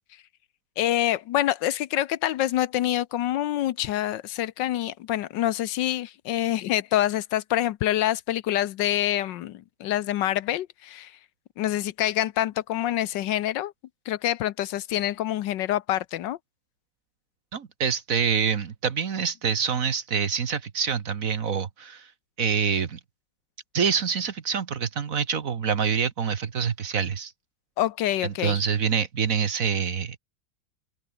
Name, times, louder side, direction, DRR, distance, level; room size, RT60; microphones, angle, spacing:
voice 1, 0.8-11.1 11.6-13.7 14.1-16.4 27.8-28.6, left 13 dB, 75° left, 1.3 m, -26 dB
voice 2, 17.5-22.1 22.4-23.0 23.7-27.3 28.2-30.2, right 6 dB, 50° right, 1.5 m, -26 dB
open air
omnidirectional pair, 2.0 m